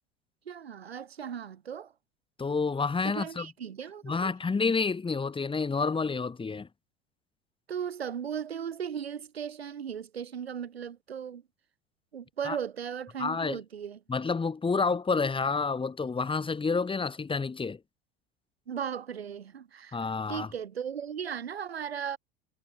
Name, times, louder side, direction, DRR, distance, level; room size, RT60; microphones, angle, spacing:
voice 1, 0.5-1.9 3.0-4.3 7.7-11.4 12.1-14.0 18.7-20.0 20.3-22.2, right 8 dB, 85° right, 6.0 m, -37 dB
voice 2, 2.4-3.5 4.0-6.7 12.4-12.6 13.2-13.6 14.1-17.8 19.9-20.5, left 4 dB, 15° left, 2.1 m, -29 dB
figure-of-eight pair, 75°, 30 cm